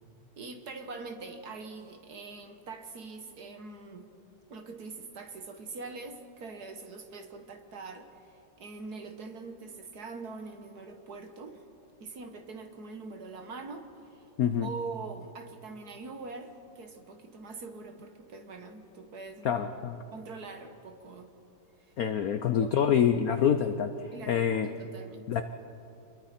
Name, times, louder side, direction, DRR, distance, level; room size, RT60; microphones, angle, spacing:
voice 1, 0.4-4.1 4.5-11.6 12.0-14.2 14.6-19.5 20.1-21.3 22.6-22.7 24.1-24.5 24.8-25.3, right 3 dB, 50° right, 6 dB, 1.6 m, -43 dB
voice 2, 14.4-14.7 19.4-20.0 22.0-24.7 25.3-25.4, left 8 dB, 80° left, 8 dB, 0.8 m, -26 dB
28.5 x 22.0 x 4.4 m, 2.7 s
omnidirectional pair, 2.4 m